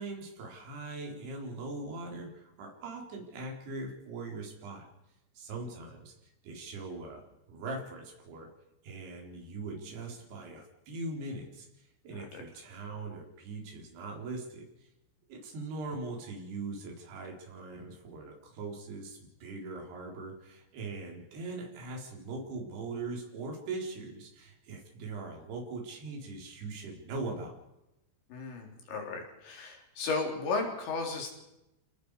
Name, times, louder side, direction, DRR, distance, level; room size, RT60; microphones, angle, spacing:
voice 1, 0.0-4.9 5.3-6.1 6.4-7.2 7.5-8.5 8.8-14.9 15.3-27.6, right 3 dB, 65° right, 0 dB, 6.0 m, -41 dB
voice 2, 28.3-31.3, left 3 dB, 85° left, 2 dB, 6.2 m, -35 dB
30.0 x 19.0 x 4.9 m, 0.90 s
omnidirectional pair, 5.1 m